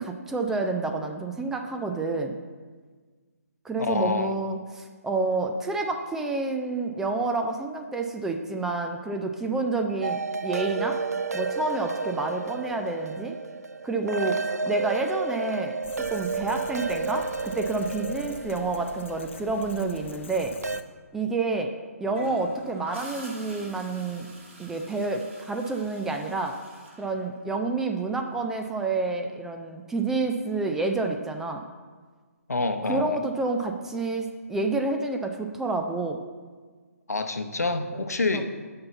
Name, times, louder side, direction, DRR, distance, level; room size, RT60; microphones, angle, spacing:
voice 1, 0.0-2.3 3.6-11.0 11.3-13.3 13.8-15.8 16.1-20.5 21.1-21.7 22.0-24.3 24.6-26.6 27.0-31.6 32.8-36.2 37.9-38.0 38.3-38.4, right 3 dB, 5° right, 3 dB, 0.3 m, -29 dB
voice 2, 3.8-4.3 32.5-33.2 37.1-38.4, left 3 dB, 80° left, 6 dB, 0.8 m, -27 dB
sound 1, 10.0-20.8, right 4 dB, 80° right, 0.4 m, -32 dB
sound 2, 15.8-20.8, left 4 dB, 50° left, 0.7 m, -44 dB
Gurgling / Toilet flush, 22.1-27.9 29.9-30.1, right 2 dB, 50° right, 2.0 m, -46 dB
6.6 x 5.6 x 6.9 m, 1.5 s
figure-of-eight pair, 145°, 8 cm